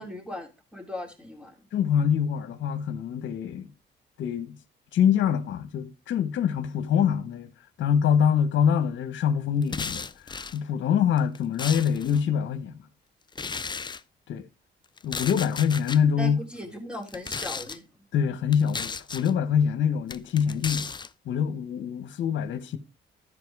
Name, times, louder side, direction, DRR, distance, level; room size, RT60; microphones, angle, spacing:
voice 1, 0.0-1.6 16.2-17.8, left 1 dB, 5° right, 3.3 m, -38 dB
voice 2, 1.7-3.7 4.2-4.6 4.9-7.5 7.8-10.1 10.5-12.7 14.3-14.4 15.0-16.4 18.1-20.9 21.3-22.8, left 8 dB, 70° left, 1.2 m, -24 dB
sound 1, 9.6-10.6 11.2-12.2 13.3-14.0 15.0-16.0 17.0-17.8 18.5-19.3 20.1-21.1, left 5 dB, 20° left, 0.5 m, -35 dB
13.0 x 5.2 x 4.8 m
cardioid pair, 90°, 20 cm